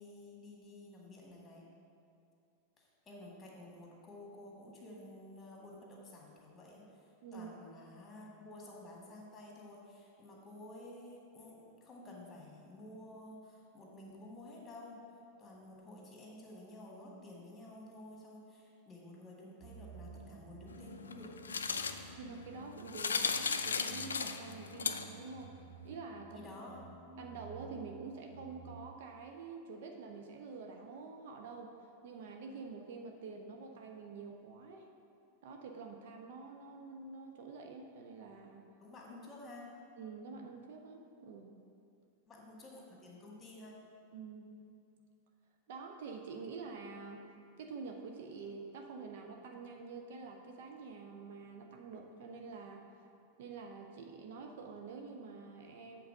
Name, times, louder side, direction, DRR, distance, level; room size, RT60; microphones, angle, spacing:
voice 1, 0.0-1.7 2.8-15.0 15.4-21.3 26.3-26.8 38.8-39.7 42.3-43.8, left 1 dB, 20° left, -2 dB, 1.8 m, -52 dB
sound 1, 19.6-28.9, right 4 dB, 30° right, 0.9 m, -53 dB
sound 2, 20.7-25.4, left 5 dB, 70° left, 0.3 m, -37 dB
voice 2, 22.2-25.6 25.8-26.4 27.2-31.7 32.0-34.9 35.4-38.7 40.0-41.6 44.1-44.5 45.7-47.3 47.6-52.9 53.4-56.0, right 4 dB, 55° right, 3 dB, 0.6 m, -47 dB
8.0 x 3.9 x 6.3 m, 2.5 s
figure-of-eight pair, 90°, 0 cm